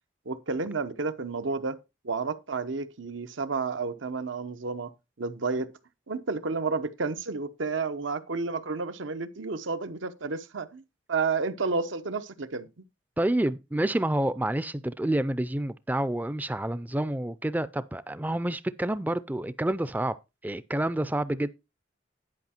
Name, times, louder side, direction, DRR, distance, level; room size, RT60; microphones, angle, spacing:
voice 1, 0.3-1.8 2.0-4.9 5.2-5.7 6.1-10.8 11.1-12.8, right 4 dB, 80° right, 0.9 m, -31 dB
voice 2, 13.2-20.1 20.4-21.5, right 1 dB, 10° right, 0.4 m, -28 dB
11.0 x 5.5 x 4.4 m
head